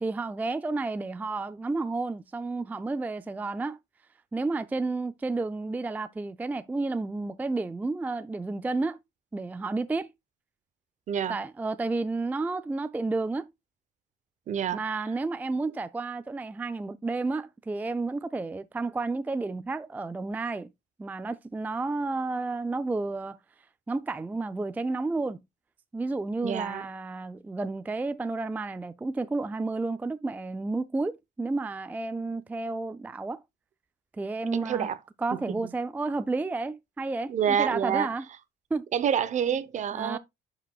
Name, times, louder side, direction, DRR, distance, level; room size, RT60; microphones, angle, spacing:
voice 1, 0.0-3.8 4.3-9.0 9.3-10.1 11.3-13.5 14.7-20.7 21.0-23.4 23.9-25.4 25.9-33.4 34.1-34.9 35.2-38.3 38.7-38.9 39.9-40.2, right 3 dB, 10° right, 0.3 m, -31 dB
voice 2, 11.1-11.4 14.5-14.8 15.6-15.8 26.4-26.9 34.5-35.0 35.3-35.7 37.3-38.1 38.9-40.2, right 8 dB, 45° right, 0.7 m, -28 dB
11.0 x 5.0 x 2.3 m
cardioid pair, 110°, 17 cm